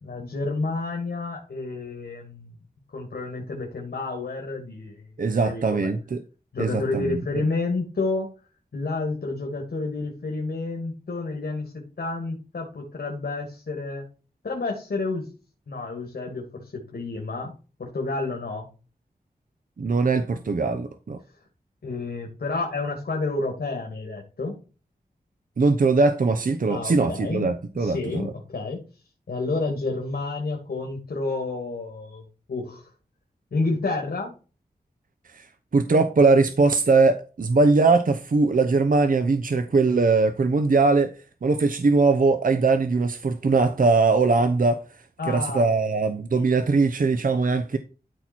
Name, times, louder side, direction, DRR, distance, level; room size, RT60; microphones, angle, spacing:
voice 1, 0.0-2.5 2.9-5.9 6.5-8.3 8.7-14.0 14.4-15.3 15.7-17.5 17.8-18.7 21.8-24.6 26.7-27.5 27.8-28.8 29.3-32.9 33.5-34.3 45.2-45.8, left 3 dB, 80° left, 2.4 m, -30 dB
voice 2, 5.2-6.2 6.6-7.2 19.8-21.2 25.6-28.3 35.7-41.1 41.4-44.8 45.3-47.8, right 3 dB, 60° right, 0.8 m, -21 dB
12.5 x 4.2 x 4.5 m
wide cardioid pair, 95°, 16 cm